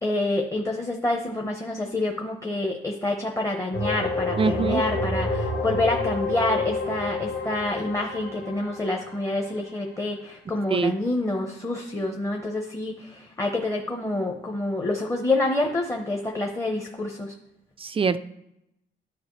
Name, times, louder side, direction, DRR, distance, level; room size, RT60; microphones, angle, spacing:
voice 1, 0.0-17.3, left 2 dB, 15° left, 2 dB, 0.9 m, -27 dB
sound 1, 3.7-9.4, left 2 dB, 55° left, 1.8 m, -29 dB
voice 2, 4.4-4.8 10.7-10.9 17.8-18.2, right 5 dB, 30° right, 12 dB, 0.4 m, -23 dB
10.5 x 5.0 x 3.2 m, 0.84 s
cardioid pair, 90°, 20 cm